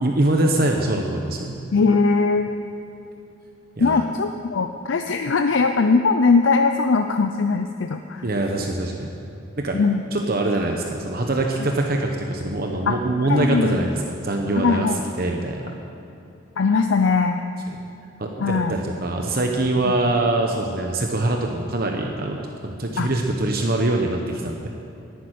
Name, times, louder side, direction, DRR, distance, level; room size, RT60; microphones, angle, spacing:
voice 1, 0.0-1.6 3.8-4.1 8.2-9.1 9.6-9.8 10.1-14.9 15.2-15.7 18.2-24.7, right 2 dB, 50° right, 2 dB, 1.0 m, -23 dB
voice 2, 1.7-2.5 3.8-8.2 9.7-10.0 12.9-13.0 13.2-13.9 14.6-15.0 16.6-17.4 18.4-18.7 19.8-19.9 23.0-23.1, left 4 dB, 70° left, 6 dB, 0.5 m, -20 dB
11.0 x 9.3 x 9.3 m, 2.7 s
head